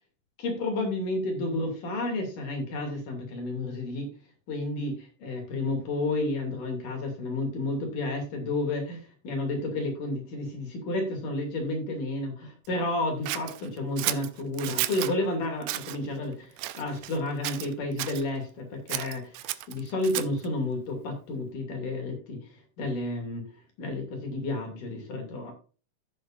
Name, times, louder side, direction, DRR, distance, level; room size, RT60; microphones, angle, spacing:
voice 1, 0.4-4.1 4.5-23.4 23.8-25.5, left 2 dB, 80° left, 2 dB, 4.2 m, -31 dB
Scissors, 13.3-15.1 15.6-16.0 16.6-17.2 17.4-18.2 18.9-20.5, right 16 dB, 90° right, 2.2 m, -33 dB
15.0 x 6.9 x 2.6 m, 0.37 s
omnidirectional pair, 3.6 m